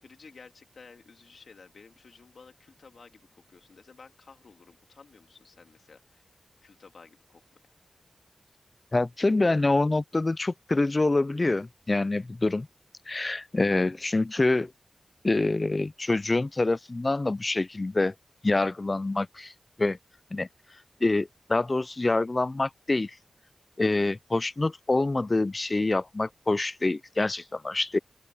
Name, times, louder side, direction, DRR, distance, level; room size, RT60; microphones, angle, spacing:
voice 1, 0.0-6.3 6.6-7.4 8.5-8.6, left 4 dB, 75° left, 3.1 m, -53 dB
voice 2, 8.9-12.7 13.1-14.7 15.2-18.1 18.4-19.5 19.8-20.0 20.3-20.5 21.0-23.1 23.8-28.0, left 2 dB, 35° left, 0.4 m, -26 dB
open air
wide cardioid pair, 80°, 0 cm